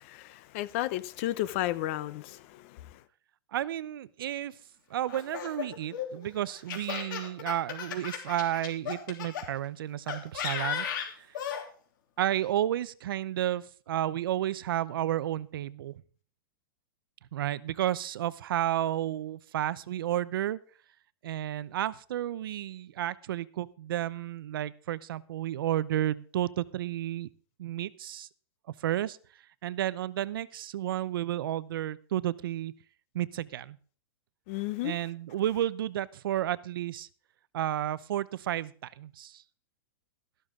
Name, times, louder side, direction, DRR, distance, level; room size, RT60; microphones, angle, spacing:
voice 1, 0.0-3.0 34.5-35.0, left 15 dB, 35° left, 0.6 m, -33 dB
voice 2, 3.5-4.5 4.9-11.3 12.2-15.9 17.3-20.6 21.2-27.3 27.6-28.3 28.8-29.2 29.6-32.7 33.1-33.8 34.8-37.1 37.5-39.4, right 12 dB, 65° right, 0.7 m, -32 dB
Laughter, 5.1-9.5 10.1-11.6, left 8 dB, 55° left, 3.1 m, -35 dB
13.5 x 12.0 x 3.7 m
supercardioid pair, 175°, 12 cm